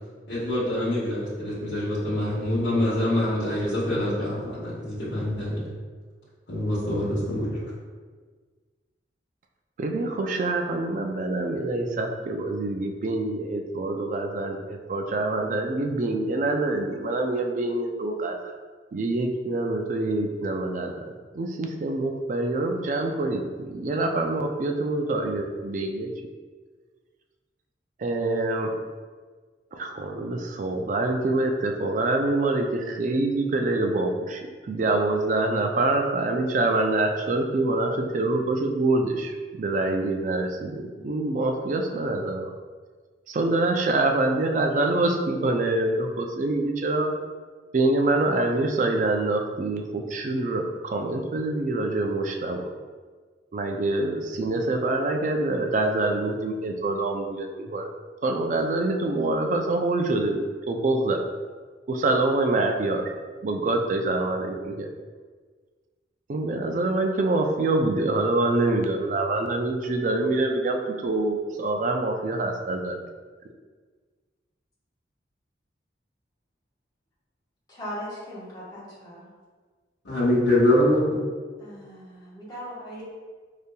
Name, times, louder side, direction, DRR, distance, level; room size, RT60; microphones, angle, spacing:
voice 1, 0.3-5.6 6.5-7.6 80.0-81.2, left 1 dB, 65° left, -11 dB, 1.2 m, -24 dB
voice 2, 9.8-18.5 18.9-20.9 21.3-26.1 28.0-28.7 29.7-42.5 43.3-47.1 47.7-52.7 53.5-57.9 58.2-61.2 61.9-63.2 63.4-64.9 66.3-73.0, right 2 dB, 40° right, 3 dB, 0.3 m, -25 dB
voice 3, 77.7-79.3 81.6-82.2 82.5-83.0, equal, 20° left, -10 dB, 1.0 m, -38 dB
4.9 x 2.7 x 2.2 m, 1.5 s
head